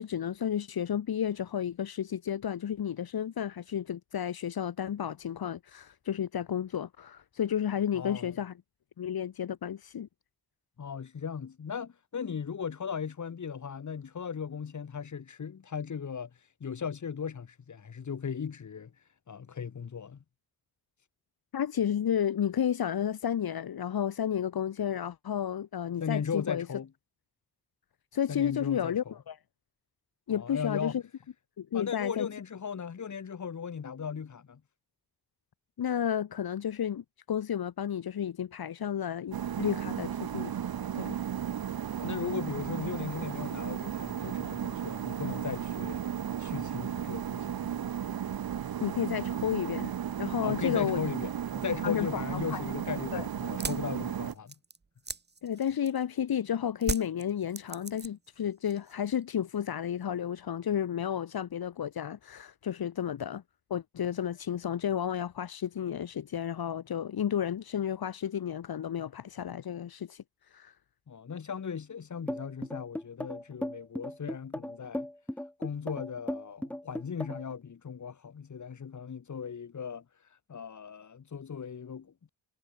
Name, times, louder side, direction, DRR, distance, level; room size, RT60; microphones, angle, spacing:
voice 1, 0.0-8.5 9.0-10.1 21.5-26.6 28.1-29.3 30.3-31.0 31.6-32.3 35.8-40.5 40.9-41.1 48.8-49.9 50.2-51.0 51.8-52.2 52.5-52.6 53.1-53.3 55.4-63.4 63.7-70.2 70.5-70.7, left 9 dB, 75° left, 1.6 m, -32 dB
voice 2, 7.9-8.4 10.8-16.3 16.6-18.9 19.3-20.2 26.0-26.9 28.3-29.2 30.3-31.0 31.7-34.6 42.0-46.0 46.4-47.7 50.4-54.5 71.1-75.1 75.6-80.0 80.5-82.3, left 6 dB, 50° left, 2.4 m, -37 dB
sound 1, 39.3-54.3, right 9 dB, 70° right, 1.4 m, -34 dB
sound 2, 53.6-56.2 56.8-58.4 58.6-59.2, right 4 dB, 25° right, 1.6 m, -38 dB
sound 3, 72.3-77.5, left 1 dB, 5° left, 0.9 m, -36 dB
wide cardioid pair, 155°, 37 cm